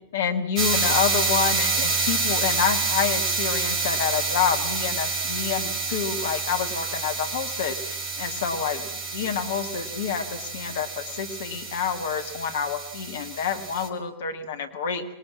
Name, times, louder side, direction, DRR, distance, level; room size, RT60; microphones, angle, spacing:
voice 1, 0.1-15.0, left 7 dB, 60° left, 7 dB, 2.1 m, -28 dB
sound 1, 0.6-13.9, right 4 dB, 30° right, 4.2 m, -28 dB
26.0 x 21.0 x 7.3 m, 0.81 s
figure-of-eight pair, 90°, 0 cm